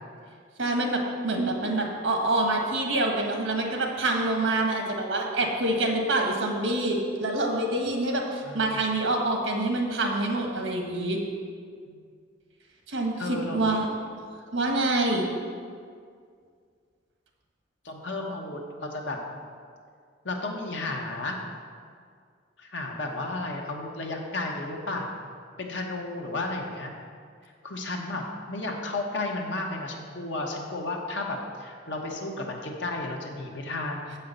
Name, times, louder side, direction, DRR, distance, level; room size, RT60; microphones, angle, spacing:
voice 1, 0.6-11.2 12.9-13.9 14.5-15.3, right 2 dB, 85° right, 1 dB, 1.4 m, -26 dB
voice 2, 8.4-8.8 11.9-12.0 13.2-13.6 17.8-19.2 20.2-21.4 22.6-25.1 25.6-26.9 27.6-34.1, left 2 dB, 70° left, 1 dB, 1.2 m, -33 dB
7.7 x 5.7 x 6.7 m, 2.1 s
head